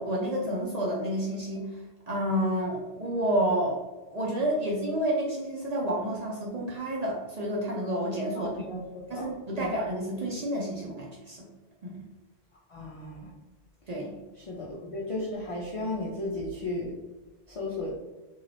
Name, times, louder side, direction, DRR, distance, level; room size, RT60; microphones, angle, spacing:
voice 1, 0.0-1.7 2.1-3.8 4.1-8.6 9.1-11.5 11.8-12.0 13.9-14.1, right 1 dB, 50° right, -3 dB, 0.5 m, -29 dB
voice 2, 8.3-9.7 12.7-13.3 14.4-16.9 17.5-17.9, left 2 dB, 60° left, -2 dB, 0.3 m, -35 dB
2.5 x 2.3 x 3.2 m, 1.2 s
omnidirectional pair, 1.1 m